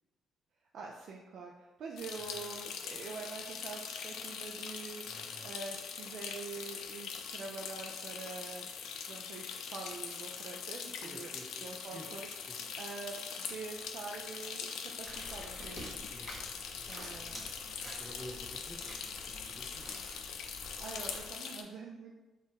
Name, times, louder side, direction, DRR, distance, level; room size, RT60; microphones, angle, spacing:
voice 1, 0.7-5.0 5.4-8.7 9.1-11.3 11.6-12.3 12.8-16.0 16.9-17.5 20.8-22.1, right 4 dB, 65° right, 0 dB, 0.4 m, -45 dB
sound 1, 2.0-21.6, left 6 dB, 85° left, 0.4 m, -42 dB
voice 2, 2.2-2.5 5.0-5.5 9.6-9.7 11.0-12.1 12.5-12.7 16.1-20.0, equal, 5° left, 1 dB, 0.6 m, -52 dB
sound 2, 15.0-21.3, equal, 20° right, 1.5 m, -49 dB
3.7 x 2.4 x 4.0 m, 1.1 s
cardioid pair, 90°, 0 cm